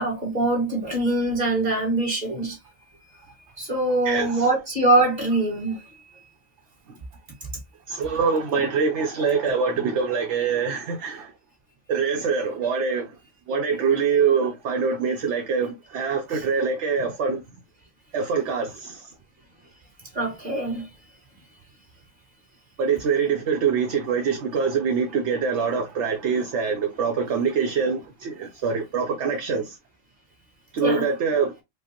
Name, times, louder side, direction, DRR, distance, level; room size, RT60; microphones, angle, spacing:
voice 1, 0.0-2.6 3.6-5.8 16.3-16.4 20.1-20.9 30.8-31.1, right 2 dB, 30° right, 1.8 m, -23 dB
voice 2, 4.0-4.4 7.9-11.3 11.9-13.1 13.5-17.4 18.1-19.1 22.8-29.8 30.7-31.5, right 5 dB, 65° right, 0.9 m, -24 dB
4.8 x 2.0 x 2.8 m
omnidirectional pair, 1.4 m